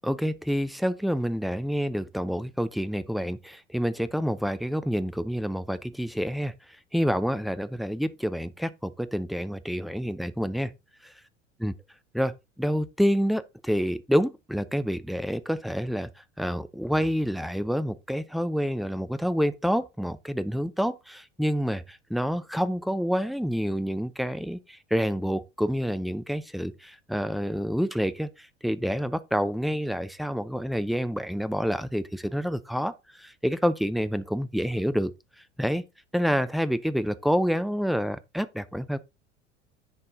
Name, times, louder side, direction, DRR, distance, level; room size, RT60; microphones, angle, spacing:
voice 1, 0.0-6.5 6.9-10.7 11.0-11.1 11.6-11.7 12.1-16.1 16.4-35.1 35.6-35.8 36.1-39.0, equal, ahead, 0.5 m, -28 dB
10.0 x 4.3 x 3.8 m
figure-of-eight pair, 80°, 36 cm